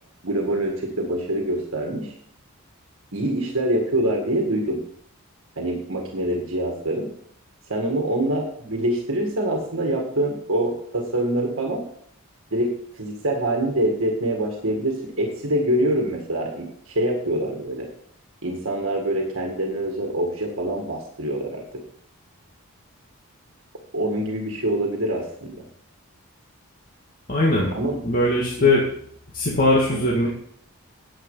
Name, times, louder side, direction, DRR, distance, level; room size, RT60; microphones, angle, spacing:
voice 1, 0.2-2.1 3.1-4.8 5.6-7.1 7.7-11.8 12.5-17.9 18.4-21.8 23.9-25.7 27.7-28.0 28.6-28.7, right 1 dB, 60° right, 1 dB, 1.9 m, -25 dB
voice 2, 27.3-27.7 28.0-28.8 29.3-30.3, left 2 dB, 40° left, -4 dB, 2.0 m, -20 dB
9.9 x 8.8 x 5.5 m, 0.66 s
head